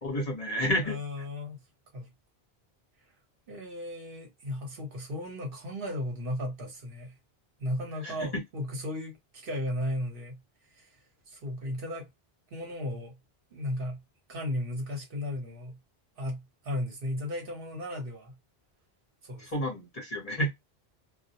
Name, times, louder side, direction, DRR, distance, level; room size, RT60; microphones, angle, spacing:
voice 1, 0.0-1.0 8.0-8.2 19.4-20.5, equal, 40° left, 0.9 m, -30 dB
voice 2, 0.6-1.6 1.9-2.1 3.5-7.1 7.6-10.4 10.7-10.9 11.3-12.1 12.5-13.1 13.5-14.0 14.3-15.8 16.2-18.3 19.2-19.5, left 1 dB, 60° right, 1.1 m, -35 dB
2.4 x 2.0 x 2.7 m
omnidirectional pair, 1.1 m